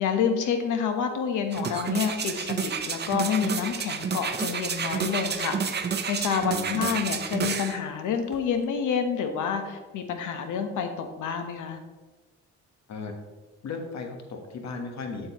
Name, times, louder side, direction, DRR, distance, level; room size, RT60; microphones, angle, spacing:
voice 1, 0.0-5.6 5.9-11.8, left 7 dB, 80° left, 6 dB, 1.1 m, -28 dB
sound 1, 1.5-7.8 8.3-8.4, right 6 dB, 35° right, 0.7 m, -30 dB
voice 2, 6.5-7.0 12.9-13.1 13.6-15.3, left 4 dB, 65° left, 4 dB, 1.4 m, -36 dB
8.0 x 7.8 x 3.0 m, 1.3 s
cardioid pair, 90°, 30 cm